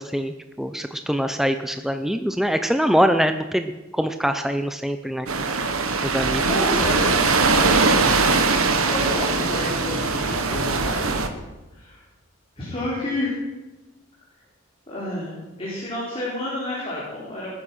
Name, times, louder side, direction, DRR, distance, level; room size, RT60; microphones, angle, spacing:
voice 1, 0.0-5.3 6.0-6.4, equal, ahead, 7 dB, 0.5 m, -23 dB
sound 1, 5.3-11.3, right 4 dB, 90° right, 1.5 m, -21 dB
voice 2, 6.5-7.9 8.9-11.1 11.7-12.0 12.6-13.4 14.9-17.5, left 1 dB, 25° left, -6 dB, 4.3 m, -30 dB
sound 2, 9.6-12.1, left 1 dB, 65° left, 1.9 m, -39 dB
19.5 x 10.0 x 6.3 m, 1.1 s
head